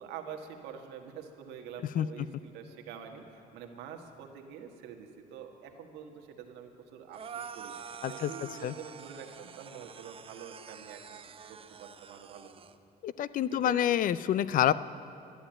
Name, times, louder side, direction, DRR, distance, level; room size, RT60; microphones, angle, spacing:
voice 1, 0.0-7.7 8.1-11.2 11.5-12.5 13.5-13.8, right 7 dB, 90° right, 3 dB, 1.5 m, -46 dB
sound 1, 7.1-12.7, right 7 dB, 35° right, 0.6 m, -46 dB
voice 2, 13.0-14.7, left 11 dB, 55° left, 17 dB, 0.5 m, -27 dB
12.0 x 11.0 x 8.8 m, 2.8 s
cardioid pair, 110°, 17 cm